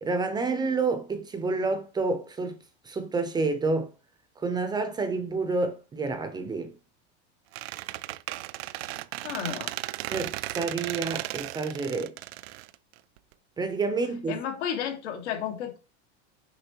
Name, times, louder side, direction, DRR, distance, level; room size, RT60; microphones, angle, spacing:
voice 1, 0.0-2.6 2.8-3.9 4.4-6.7 10.1-12.2 13.6-14.4, right 3 dB, 10° right, 0.6 m, -29 dB
Squeak, 7.5-13.3, right 17 dB, 65° right, 0.5 m, -35 dB
voice 2, 9.2-9.7 14.3-15.8, left 9 dB, 85° left, 1.7 m, -32 dB
6.9 x 4.9 x 2.9 m
supercardioid pair, 155°, 34 cm